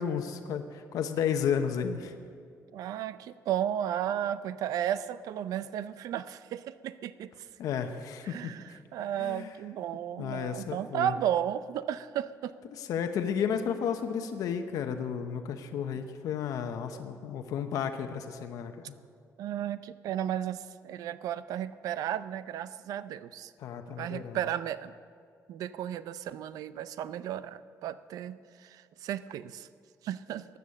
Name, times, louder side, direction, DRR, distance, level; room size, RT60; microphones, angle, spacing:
voice 1, 0.0-2.1 7.6-8.8 9.2-9.5 10.2-11.1 12.8-18.7 23.6-24.4, left 7 dB, 75° left, 7 dB, 0.9 m, -32 dB
voice 2, 2.7-7.3 8.2-12.5 16.9-17.0 19.4-23.5 24.0-24.9 25.5-29.7 30.0-30.5, right 10 dB, 80° right, 14 dB, 0.5 m, -34 dB
15.5 x 11.0 x 6.6 m, 2.2 s
cardioid pair, 170°, 6 cm